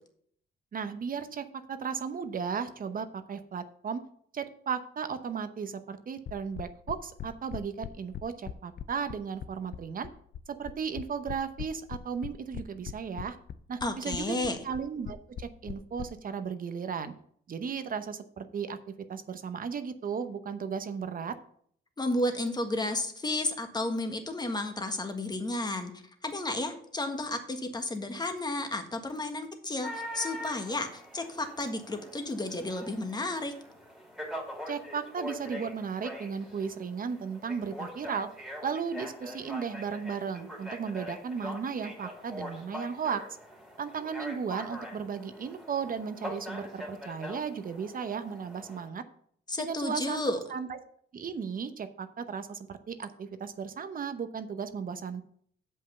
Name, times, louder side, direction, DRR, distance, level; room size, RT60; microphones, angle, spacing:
voice 1, 0.7-4.0 4.3-10.1 10.6-13.4 13.7-17.1 17.5-18.8 19.1-21.3 34.7-38.3 38.6-43.2 43.8-49.0 49.6-50.8 51.1-55.2, right 6 dB, 45° right, 10 dB, 0.9 m, -35 dB
sound 1, 6.3-16.1, left 9 dB, 55° left, 0.6 m, -40 dB
voice 2, 13.8-14.6 22.0-33.6 49.5-50.4, left 2 dB, 20° left, 6 dB, 1.5 m, -32 dB
sound 2, 29.8-48.9, equal, ahead, 2.7 m, -43 dB
7.6 x 5.5 x 6.6 m, 0.63 s
cardioid pair, 90°, 20 cm